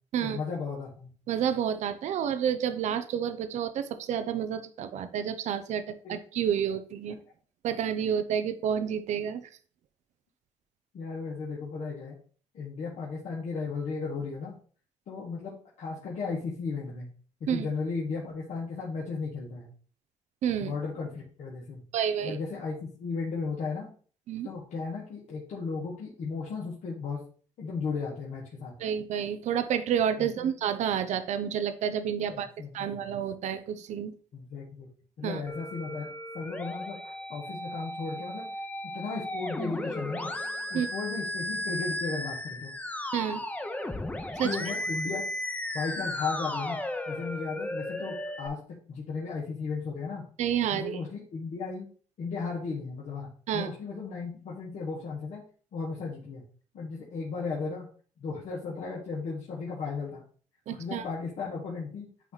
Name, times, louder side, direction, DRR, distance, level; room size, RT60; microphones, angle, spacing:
voice 1, 0.2-1.1 6.0-6.2 10.9-12.2 12.5-14.5 15.1-17.1 17.4-19.7 20.6-21.8 22.2-23.9 24.4-27.2 27.6-28.8 30.2-30.5 32.3-33.0 34.3-34.9 35.2-36.1 36.3-38.5 38.8-40.3 40.7-42.7 44.4-46.8 47.1-50.2 50.7-51.9 52.2-55.4 55.7-56.4 56.7-57.9 58.2-60.2 60.7-62.1, left 4 dB, 75° left, -5 dB, 1.7 m, -35 dB
voice 2, 1.3-7.2 7.6-9.4 17.5-17.7 20.4-20.7 21.9-22.4 24.3-24.5 28.8-32.5 32.7-34.1 35.2-35.4 40.7-40.9 43.1-43.4 44.4-44.6 50.4-51.0 53.5-53.7 60.7-61.0, right 8 dB, 80° right, 11 dB, 0.6 m, -29 dB
Musical instrument, 35.5-48.5, left 1 dB, 10° left, 0.8 m, -35 dB
9.0 x 3.0 x 4.0 m, 0.43 s
cardioid pair, 80°, 12 cm